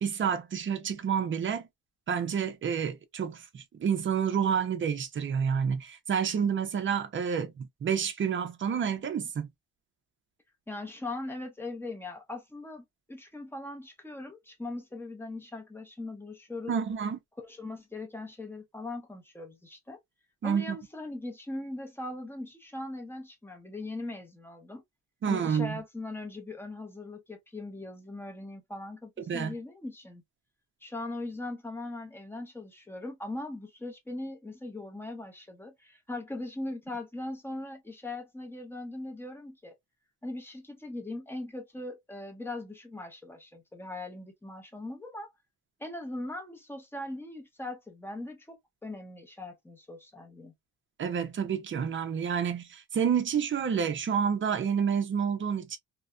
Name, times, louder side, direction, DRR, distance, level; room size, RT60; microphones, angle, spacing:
voice 1, 0.0-1.7 2.1-9.5 16.7-17.2 20.4-20.8 25.2-25.8 29.3-29.5 51.0-55.8, right 7 dB, 35° right, 0.5 m, -29 dB
voice 2, 10.7-16.7 17.4-20.0 20.4-24.8 25.3-30.2 30.8-39.7 40.2-45.3 45.8-50.5, left 2 dB, 5° left, 0.6 m, -40 dB
2.7 x 2.1 x 2.2 m
cardioid pair, 155°, 36 cm